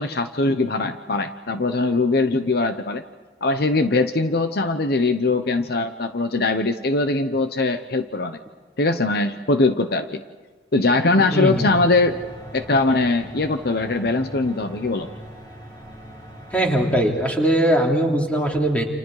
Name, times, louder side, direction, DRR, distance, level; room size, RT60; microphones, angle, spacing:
voice 1, 0.0-3.0 3.4-8.4 8.8-10.2 10.7-12.2 12.5-15.1, left 3 dB, 60° left, 9 dB, 1.0 m, -21 dB
voice 2, 11.3-11.7 16.5-18.8, right 1 dB, 10° left, 0 dB, 3.3 m, -20 dB
sound 1, 11.5-17.0, equal, 30° left, 5.0 m, -40 dB
29.5 x 28.0 x 4.9 m, 1.3 s
head